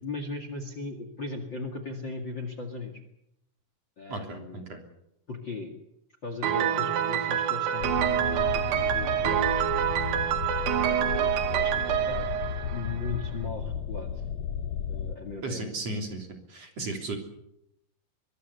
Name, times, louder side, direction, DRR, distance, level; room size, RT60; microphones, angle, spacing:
voice 1, 0.0-2.9 4.0-4.6 5.3-5.7 6.2-9.7 10.7-12.3 12.7-14.2 14.9-15.6, left 3 dB, 35° left, 8 dB, 2.2 m, -38 dB
voice 2, 4.1-4.8 15.4-17.2, right 2 dB, 40° right, 4 dB, 4.0 m, -35 dB
Piano, 6.4-13.3, right 10 dB, 70° right, 3.0 m, -27 dB
sound 1, 7.8-15.2, left 8 dB, 70° left, 1.7 m, -34 dB
23.5 x 22.5 x 6.9 m, 0.79 s
omnidirectional pair, 4.5 m